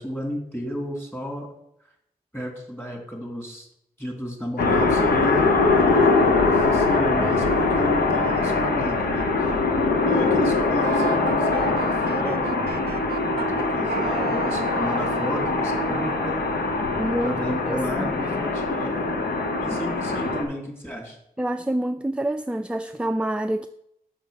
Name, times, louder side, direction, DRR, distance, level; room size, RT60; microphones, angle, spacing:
voice 1, 0.0-1.5 2.3-3.7 4.0-9.5 10.0-12.8 13.3-16.5 17.2-19.0 19.4-21.2, equal, 15° left, 3.1 m, -32 dB
sound 1, 4.6-20.4, left 3 dB, 85° left, 1.0 m, -22 dB
Wind instrument woodwind instrument, 10.8-13.5 13.9-16.3, right 7 dB, 85° right, 0.5 m, -34 dB
voice 2, 17.0-18.1 19.7-19.8 21.4-23.7, right 1 dB, 5° right, 0.4 m, -27 dB
6.4 x 5.8 x 5.7 m
cardioid pair, 40°, 16 cm